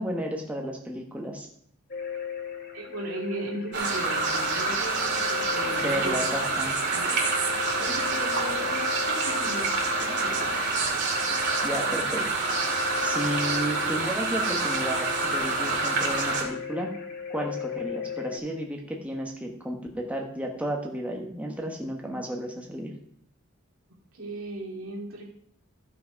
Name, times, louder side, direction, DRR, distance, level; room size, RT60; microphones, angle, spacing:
voice 1, 0.0-1.5 5.7-6.8 11.6-12.6 13.0-16.9 17.3-22.9, equal, 5° right, 1 dB, 1.1 m, -33 dB
sound 1, 1.9-18.4, left 7 dB, 45° left, 1.5 m, -38 dB
voice 2, 2.7-6.3 6.9-7.5 7.8-9.7 10.0-10.8 24.1-25.2, right 2 dB, 75° right, -1 dB, 2.7 m, -37 dB
sound 2, 3.7-16.4, right 3 dB, 55° right, 2.4 m, -27 dB
14.0 x 6.0 x 5.1 m, 0.66 s
head